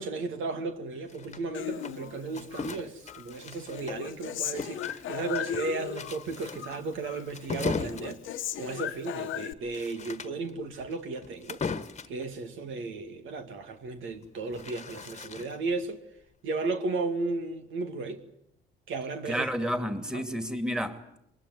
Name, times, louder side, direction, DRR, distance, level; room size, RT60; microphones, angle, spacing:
voice 1, 0.0-8.2 8.6-11.6 12.1-16.0 16.4-18.2 18.9-19.7 20.1-20.2, right 3 dB, 80° right, 2.4 m, -34 dB
sound 1, 1.1-4.2 4.6-12.2 14.1-15.7, left 5 dB, 35° left, 1.4 m, -38 dB
Human voice, 1.5-2.7 3.1-6.3 6.6-7.3 7.5-9.5, left 12 dB, 80° left, 1.2 m, -37 dB
voice 2, 19.2-21.2, equal, 5° right, 2.5 m, -31 dB
23.0 x 21.0 x 9.7 m
cardioid pair, 90°, 20 cm